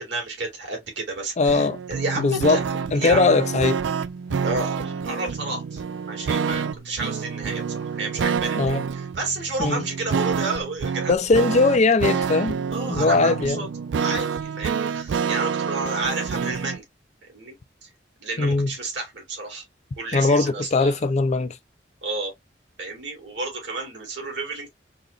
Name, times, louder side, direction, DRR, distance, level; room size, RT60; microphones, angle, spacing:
voice 1, 0.0-2.6 3.0-3.2 4.4-11.5 12.7-13.7 14.0-16.8 17.3-17.6 17.8-17.9 18.2-19.6 20.0-21.0 22.0-22.3 22.8-24.7, right 3 dB, 70° right, 2.1 m, -31 dB
voice 2, 1.4-1.8 2.2-2.6 2.9-3.8 8.6-8.8 9.6-9.8 11.1-12.6 12.9-13.6 18.4-18.7 20.1-21.6, left 3 dB, 40° left, 0.5 m, -20 dB
sound 1, 1.5-16.8, right 6 dB, 85° right, 0.4 m, -28 dB
4.0 x 3.0 x 2.3 m
head